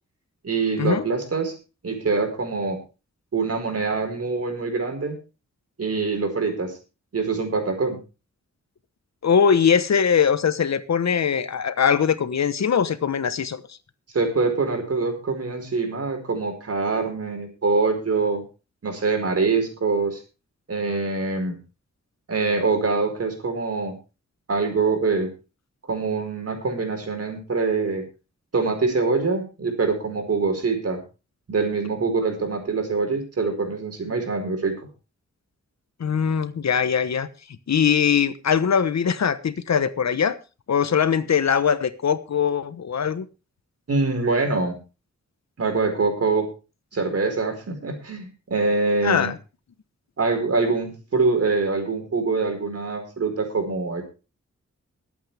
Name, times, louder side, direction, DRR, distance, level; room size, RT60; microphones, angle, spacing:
voice 1, 0.4-1.6 1.8-2.8 3.3-5.2 5.8-6.8 7.1-8.0 14.1-18.4 18.8-20.2 20.7-21.6 22.3-24.0 24.5-25.3 25.9-28.0 28.5-31.0 31.5-34.8 43.9-44.7 45.6-46.5 46.9-49.3 50.2-54.0, right 4 dB, 55° right, 5 dB, 4.9 m, -24 dB
voice 2, 9.2-13.6 36.0-37.3 37.7-40.4 40.7-43.3 49.0-49.4, left 7 dB, 65° left, 13 dB, 1.1 m, -21 dB
22.5 x 8.6 x 3.4 m, 0.32 s
wide cardioid pair, 150°, 29 cm